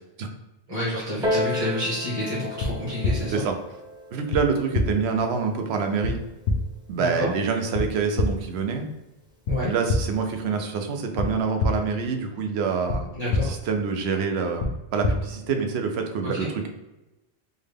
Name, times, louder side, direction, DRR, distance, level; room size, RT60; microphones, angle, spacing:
voice 1, 0.7-3.4 7.0-7.3 9.5-9.7 13.1-13.5 16.2-16.5, left 1 dB, 25° right, -9 dB, 1.1 m, -29 dB
Piano, 1.2-6.4 7.2-7.3, left 1 dB, 5° right, 0.5 m, -33 dB
sound 1, 2.6-2.7 3.0-3.1 4.3-4.4 4.7-4.8 6.0-6.1 6.5-6.6 7.7-7.8 8.2-8.3 9.5-9.6 9.9-10.0 11.2-11.3 11.6-11.7 12.9-13.0 13.3-13.4 14.6-14.7 15.0-15.1, left 2 dB, 85° left, 0.9 m, -23 dB
voice 2, 4.1-6.2 6.9-8.9 9.6-13.1 13.4-16.7, right 5 dB, 85° right, 5 dB, 0.8 m, -26 dB
3.6 x 2.2 x 3.4 m, 1.0 s
omnidirectional pair, 1.0 m